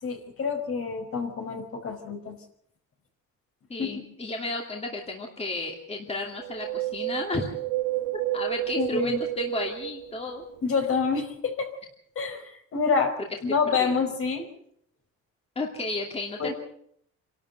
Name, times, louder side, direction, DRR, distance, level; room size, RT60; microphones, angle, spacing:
voice 1, 0.0-2.4 3.8-4.1 8.8-9.2 10.6-11.7 12.1-12.4 12.7-13.2 13.4-14.5 16.4-16.5, left 5 dB, 45° left, 5 dB, 4.7 m, -27 dB
voice 2, 3.7-7.5 8.3-10.4 13.8-14.0 15.6-16.5, left 2 dB, 20° left, 1 dB, 2.6 m, -33 dB
Wind, 6.4-10.7 11.0-11.1, right 14 dB, 90° right, 1.5 m, -31 dB
27.0 x 12.5 x 8.0 m, 0.68 s
cardioid pair, 130°, 30 cm